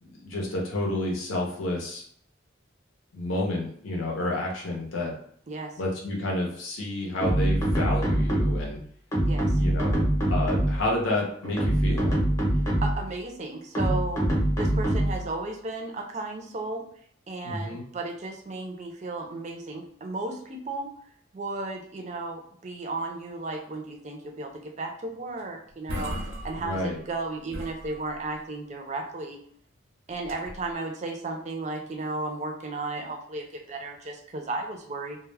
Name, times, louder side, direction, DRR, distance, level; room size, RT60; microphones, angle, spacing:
voice 1, 0.0-2.0 3.1-5.1 5.8-8.8 9.6-9.9 10.3-12.1 17.4-17.8 26.6-27.0, left 1 dB, 85° left, -2 dB, 0.7 m, -30 dB
sound 1, 7.2-8.7 9.1-10.9 11.4-13.1 13.7-15.3, right 1 dB, 15° left, 0.7 m, -24 dB
voice 2, 9.2-9.6 12.8-14.3 14.6-16.8 17.3-20.9 21.3-26.1 26.4-29.4 30.1-35.2, right 2 dB, 35° right, 2 dB, 0.4 m, -34 dB
sound 2, 25.4-25.5 25.7-27.2 27.5-28.5 30.1-30.7, equal, 90° right, 0.7 m, -37 dB
2.2 x 2.0 x 3.2 m, 0.62 s
head